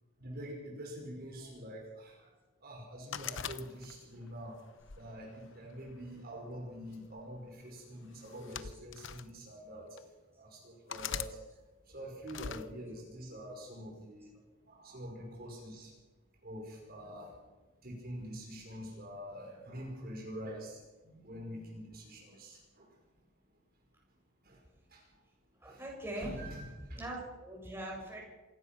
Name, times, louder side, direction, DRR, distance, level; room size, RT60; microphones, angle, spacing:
voice 1, 0.2-2.3 2.6-4.5 4.9-10.0 10.4-11.4 11.9-14.3 14.7-15.9 16.4-17.4 17.8-22.9 24.4-24.6 24.9-25.0 25.7-25.8 26.2-26.6 26.9-27.0, equal, 45° right, -1 dB, 5.4 m, -45 dB
sound 1, 3.1-4.2 4.8-6.0 6.9-7.2 8.2-9.3 10.0-10.1 10.9-11.3 12.3-12.7, left 8 dB, 60° left, 0.9 m, -41 dB
voice 2, 25.6-26.4 26.9-28.2, right 1 dB, 10° right, -2 dB, 7.5 m, -42 dB
27.5 x 17.0 x 6.1 m, 1.2 s
head